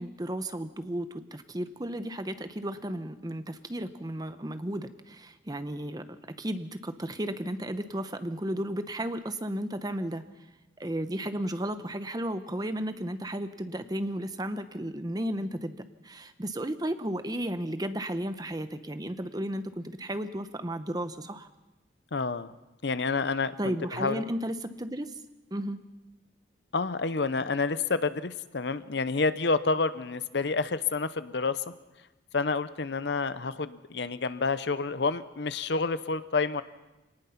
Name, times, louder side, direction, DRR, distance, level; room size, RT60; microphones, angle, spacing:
voice 1, 0.0-10.3 10.8-15.8 16.0-21.5 23.6-25.1 25.5-25.8, right 1 dB, 20° right, 10 dB, 0.8 m, -34 dB
voice 2, 22.1-22.5 22.8-24.2 26.7-31.6 32.3-36.6, left 4 dB, 65° left, 14 dB, 0.7 m, -29 dB
25.0 x 19.0 x 5.8 m, 1.1 s
head